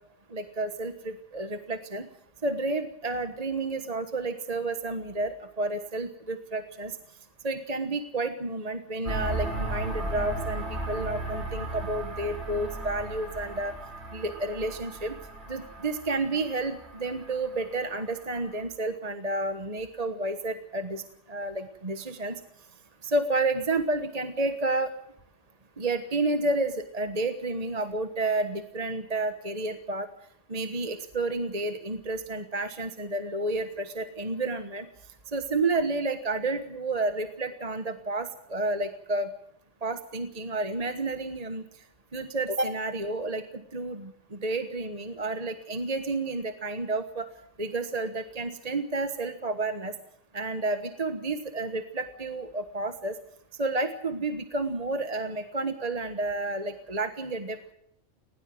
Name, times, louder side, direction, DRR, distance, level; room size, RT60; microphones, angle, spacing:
voice 1, 0.3-2.1 2.4-7.0 7.4-13.7 14.1-15.1 15.5-21.0 21.3-22.3 23.0-24.9 25.8-30.1 30.5-34.9 35.3-39.3 39.8-41.6 42.1-47.3 47.6-49.9 50.3-53.2 53.6-57.7, right 2 dB, 30° right, 8 dB, 1.4 m, -30 dB
sound 1, 9.0-18.6, right 2 dB, 55° right, 4.7 m, -36 dB
19.5 x 18.0 x 7.6 m, 0.71 s
omnidirectional pair, 1.3 m